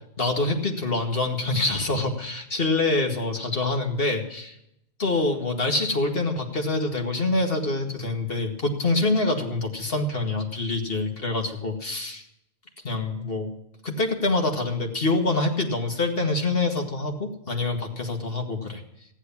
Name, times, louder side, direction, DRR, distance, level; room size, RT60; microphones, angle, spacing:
voice 1, 0.2-4.5 5.0-12.2 12.8-13.5 13.8-18.8, left 2 dB, 45° left, 2 dB, 2.2 m, -25 dB
14.5 x 10.5 x 7.2 m, 0.78 s
omnidirectional pair, 1.4 m